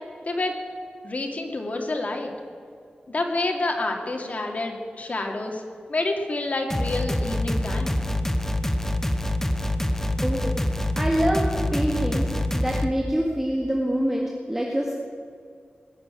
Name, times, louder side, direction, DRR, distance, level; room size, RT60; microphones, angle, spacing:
voice 1, 1.0-2.3 3.1-5.6 5.9-8.0, left 2 dB, 50° left, 2 dB, 2.3 m, -28 dB
sound 1, 6.7-12.9, left 1 dB, 10° left, 1.0 m, -25 dB
voice 2, 10.2-10.6 11.0-11.4 11.7-12.3 12.5-14.9, equal, 10° right, -2 dB, 1.9 m, -25 dB
20.0 x 6.9 x 9.5 m, 2.2 s
wide cardioid pair, 95°, 3 cm